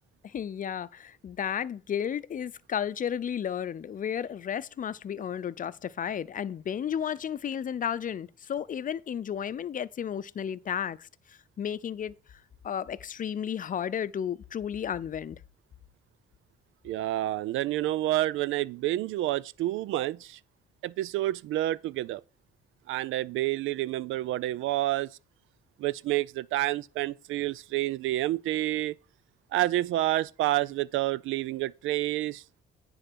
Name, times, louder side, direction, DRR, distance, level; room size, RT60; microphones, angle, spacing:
voice 1, 0.2-12.1 12.6-15.4, left 8 dB, 45° left, 0.6 m, -33 dB
voice 2, 16.8-20.4 20.8-22.2 22.9-25.1 25.8-28.9 29.5-32.6, right 15 dB, 85° right, 0.5 m, -29 dB
9.9 x 4.0 x 6.2 m
cardioid pair, 90°, 20 cm